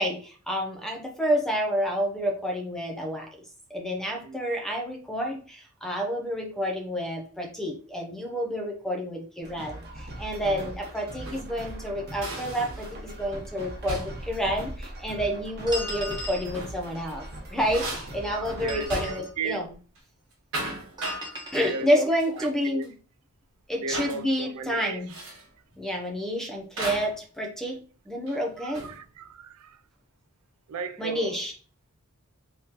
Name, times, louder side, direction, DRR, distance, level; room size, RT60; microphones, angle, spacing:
voice 1, 0.0-3.3 3.7-19.7 21.5-22.9 23.7-25.1 25.8-27.8 28.1-28.9 31.0-31.5, equal, ahead, 0.6 m, -29 dB
sound 1, 9.4-18.8, right 1 dB, 50° right, 1.0 m, -40 dB
voice 2, 10.4-10.8 18.2-19.6 21.7-22.9 23.8-25.2 28.6-29.8 30.7-31.4, right 4 dB, 85° right, 0.4 m, -36 dB
sound 2, 11.2-11.6 12.2-13.0 13.3-13.5 13.9-14.3 16.3-16.8 17.2-19.4 19.7-20.0 20.3-21.3 22.2-22.6 22.8-22.9 23.9-24.2 25.1-25.5 26.8-27.2 28.3-29.0, right 2 dB, 65° right, 1.3 m, -36 dB
sound 3, 15.7-16.5 18.5-19.3 21.0-21.8, equal, 20° right, 1.1 m, -36 dB
3.6 x 3.0 x 2.9 m
head